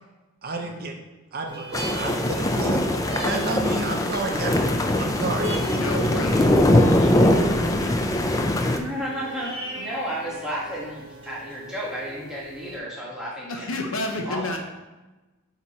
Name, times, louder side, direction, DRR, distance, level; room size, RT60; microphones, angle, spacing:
voice 1, 0.4-0.9 1.3-2.8 3.2-4.7 5.0-5.5, right 3 dB, 45° right, 3 dB, 0.6 m, -30 dB
sound 1, 1.5-12.8, right 1 dB, 25° right, 1.3 m, -38 dB
sound 2, 1.7-8.8, left 1 dB, 15° left, 0.4 m, -21 dB
voice 2, 5.7-8.3 13.5-14.6, left 2 dB, 65° left, 2 dB, 0.9 m, -32 dB
voice 3, 8.7-13.7 14.2-14.6, equal, 5° right, -6 dB, 1.4 m, -32 dB
8.4 x 2.9 x 4.2 m, 1.1 s
head